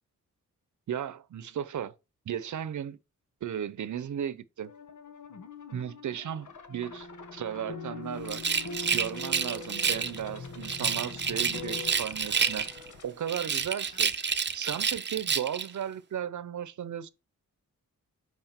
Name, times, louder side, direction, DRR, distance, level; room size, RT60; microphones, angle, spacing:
voice 1, 0.9-1.9 2.3-3.0 3.4-4.7 5.7-8.4 8.9-12.7 13.0-14.2 14.5-17.1, right 9 dB, 70° right, 0.8 m, -35 dB
sound 1, 4.6-14.0, left 5 dB, 70° left, 1.4 m, -47 dB
sound 2, 6.7-11.9, left 3 dB, 90° left, 1.9 m, -43 dB
Rattle, 8.3-10.2 10.6-12.9 13.3-15.7, right 6 dB, 35° right, 0.7 m, -29 dB
8.0 x 4.9 x 4.5 m
wide cardioid pair, 105°, 31 cm